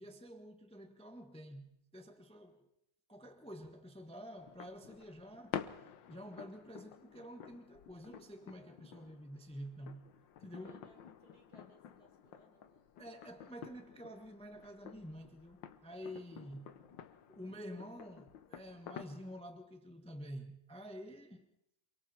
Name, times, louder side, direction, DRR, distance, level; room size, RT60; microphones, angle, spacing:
voice 1, 0.0-2.7 3.1-5.6 6.1-10.1 10.4-10.8 13.0-16.8 17.3-21.5, equal, 5° left, 1.4 m, -49 dB
voice 2, 2.1-2.7 10.6-12.8 16.2-16.3 16.7-17.0, right 1 dB, 55° right, 5.2 m, -67 dB
sound 1, 4.4-19.4, left 9 dB, 85° left, 1.7 m, -51 dB
27.5 x 24.0 x 4.4 m
omnidirectional pair, 2.0 m